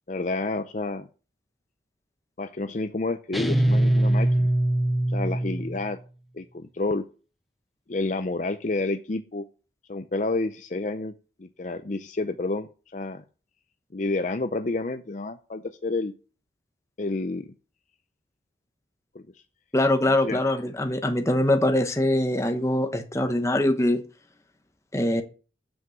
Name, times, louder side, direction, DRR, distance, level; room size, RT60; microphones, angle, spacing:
voice 1, 0.1-1.1 2.4-4.5 5.1-6.0 6.3-7.0 7.9-9.4 9.9-11.1 11.4-13.2 13.9-16.1 17.0-17.5 19.1-19.2 20.1-20.4, left 2 dB, 40° left, 9 dB, 0.5 m, -29 dB
sound 1, 3.3-5.9, right 1 dB, ahead, 0.7 m, -22 dB
voice 2, 19.7-24.0 24.9-25.2, left 1 dB, 15° left, 7 dB, 1.0 m, -23 dB
7.8 x 6.0 x 7.8 m, 0.36 s
head